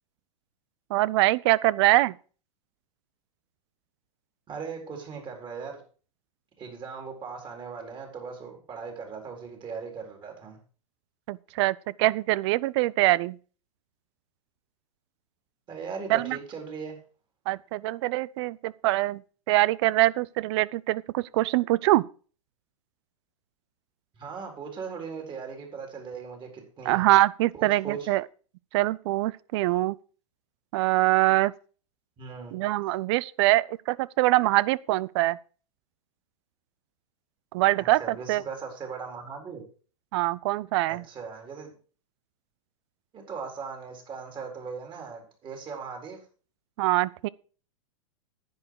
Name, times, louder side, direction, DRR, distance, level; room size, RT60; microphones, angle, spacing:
voice 1, 0.9-2.1 11.3-13.4 16.1-16.4 17.5-19.2 19.5-22.0 26.9-28.2 28.7-29.9 30.7-31.5 32.5-35.4 37.5-38.4 40.1-41.0 46.8-47.3, right 18 dB, 50° right, 0.5 m, -24 dB
voice 2, 4.5-5.8 6.6-10.6 15.7-17.0 24.1-27.1 27.5-28.1 32.2-32.6 37.7-39.6 40.8-41.7 43.1-46.2, right 5 dB, 25° right, 4.1 m, -39 dB
10.5 x 9.0 x 4.7 m
hypercardioid pair, 115°, 18 cm